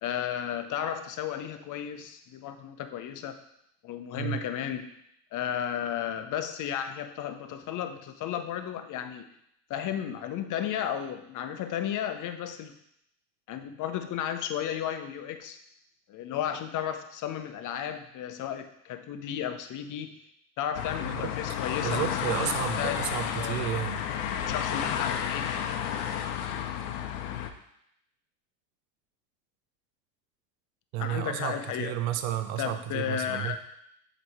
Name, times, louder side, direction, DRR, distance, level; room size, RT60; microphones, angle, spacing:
voice 1, 0.0-3.4 3.8-4.9 5.3-9.3 9.7-12.7 13.5-15.6 16.1-20.2 20.6-22.1 22.4-22.5 22.8-23.7 24.4-25.5 31.0-32.0 32.6-33.6, left 9 dB, 45° left, 8 dB, 0.7 m, -34 dB
sound 1, 20.7-27.5, left 9 dB, 75° left, 0.7 m, -31 dB
voice 2, 21.8-24.0 30.9-33.6, right 12 dB, 70° right, 9 dB, 0.8 m, -32 dB
7.6 x 3.1 x 4.3 m, 0.75 s
hypercardioid pair, 80°, 44 cm